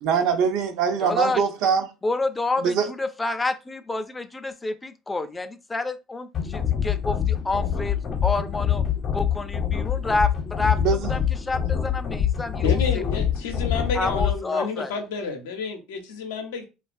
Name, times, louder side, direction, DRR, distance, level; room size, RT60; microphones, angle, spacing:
voice 1, 0.0-1.8 2.6-2.9 10.8-11.1, right 6 dB, 70° right, 0.5 m, -22 dB
voice 2, 1.0-1.4 2.0-8.8 9.1-13.0 13.9-14.9, left 2 dB, 20° left, 0.4 m, -29 dB
sound 1, 6.3-14.3, left 9 dB, 50° left, 0.7 m, -25 dB
voice 3, 12.6-16.6, left 5 dB, 85° left, 0.6 m, -30 dB
2.3 x 2.3 x 2.4 m
hypercardioid pair, 70°, 0 cm